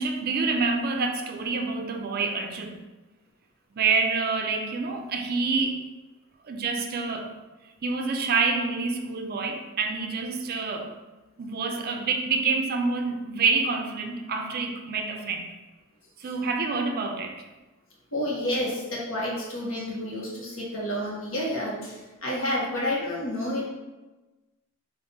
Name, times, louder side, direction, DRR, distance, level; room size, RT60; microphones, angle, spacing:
voice 1, 0.0-2.8 3.7-5.8 6.4-7.3 7.8-10.9 11.4-15.5 16.2-17.4, right 4 dB, 45° right, 4 dB, 0.4 m, -27 dB
voice 2, 18.1-23.6, left 1 dB, 70° left, -4 dB, 1.1 m, -30 dB
3.7 x 2.5 x 3.9 m, 1.1 s
head